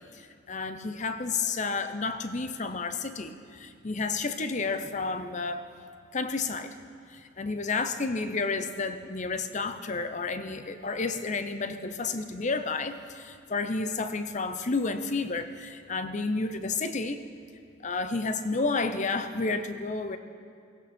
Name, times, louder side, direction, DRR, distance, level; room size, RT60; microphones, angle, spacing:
voice 1, 0.1-5.6 6.1-6.7 7.1-17.2 17.8-20.2, left 3 dB, 35° left, 10 dB, 0.7 m, -31 dB
16.5 x 16.0 x 4.4 m, 2.4 s
head